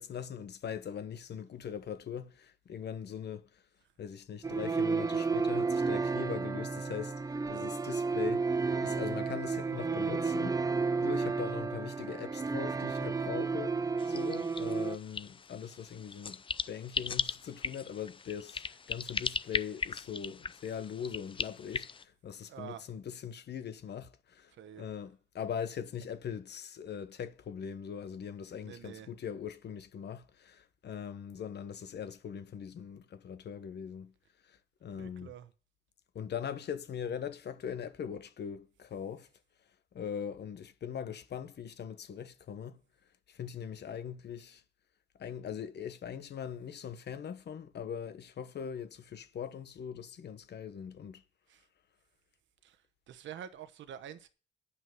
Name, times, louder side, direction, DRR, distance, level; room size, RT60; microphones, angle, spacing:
voice 1, 0.0-3.6 4.0-7.2 7.5-10.6 11.0-13.8 14.1-24.5 24.8-34.1 34.4-35.3 36.1-39.3 39.9-42.8 43.3-44.6 45.2-51.2, left 8 dB, 60° left, 1.2 m, -41 dB
sound 1, 4.4-15.0, right 4 dB, 20° right, 0.6 m, -32 dB
sound 2, 14.0-22.0, left 5 dB, 25° left, 0.5 m, -38 dB
voice 2, 22.5-22.8 24.6-24.9 28.6-29.1 35.0-35.5 51.5-51.6 52.6-52.8 53.1-54.3, right 9 dB, 70° right, 1.0 m, -47 dB
9.7 x 5.7 x 8.1 m
cardioid pair, 90°, 20 cm